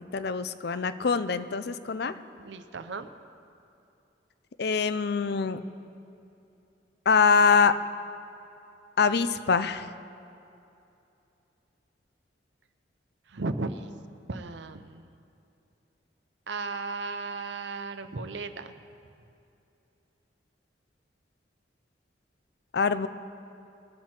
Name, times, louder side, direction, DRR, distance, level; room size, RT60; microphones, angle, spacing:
voice 1, 0.0-2.1 4.6-5.6 7.1-7.8 9.0-9.9 22.7-23.1, left 5 dB, 60° left, 12 dB, 0.5 m, -24 dB
voice 2, 2.4-3.1 13.3-13.9 14.3-15.1 16.5-18.7, right 3 dB, 70° right, 10 dB, 0.7 m, -35 dB
21.0 x 7.6 x 4.4 m, 2.7 s
head